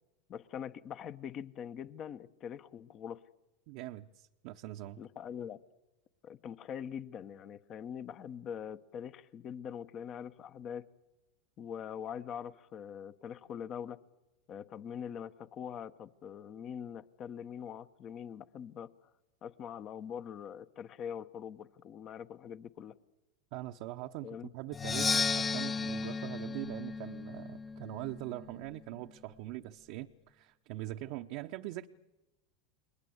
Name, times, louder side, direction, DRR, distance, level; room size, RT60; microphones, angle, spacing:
voice 1, 0.3-3.2 5.0-5.6 6.2-10.9 11.6-14.0 14.5-18.9 19.4-22.9 24.2-24.5, left 8 dB, 40° left, 14 dB, 1.1 m, -43 dB
voice 2, 3.7-5.0 23.5-31.9, right 16 dB, 60° right, 4 dB, 0.8 m, -42 dB
Percussion, 24.7-28.5, left 4 dB, 25° left, 0.8 m, -34 dB
29.5 x 22.0 x 8.1 m, 1.1 s
hypercardioid pair, 90°, 0 cm